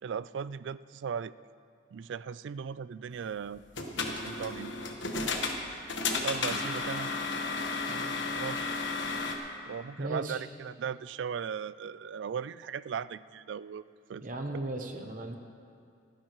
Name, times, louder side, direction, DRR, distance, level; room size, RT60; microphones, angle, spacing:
voice 1, 0.0-1.3 1.9-4.7 6.2-7.1 7.9-8.8 9.7-13.8 14.1-14.3, right 7 dB, 65° right, 17 dB, 0.3 m, -38 dB
sound 1, 3.6-9.4, left 3 dB, 65° left, 1.2 m, -33 dB
voice 2, 10.0-10.4 14.2-15.3, right 2 dB, 40° right, 4 dB, 0.9 m, -36 dB
28.0 x 10.0 x 3.1 m, 2.4 s
head